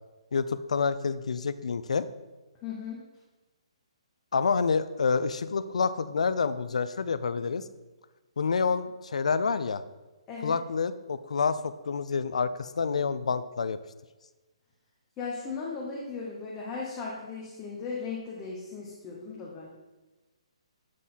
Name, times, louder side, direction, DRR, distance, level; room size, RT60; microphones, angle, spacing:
voice 1, 0.3-2.1 4.3-7.6 8.4-9.8 10.4-13.8, left 5 dB, 85° left, 13 dB, 0.4 m, -28 dB
voice 2, 2.6-3.0 10.3-10.6 15.2-19.7, left 4 dB, 15° left, -4 dB, 0.7 m, -37 dB
7.5 x 3.6 x 4.1 m, 1.2 s
hypercardioid pair, 170°, 3 cm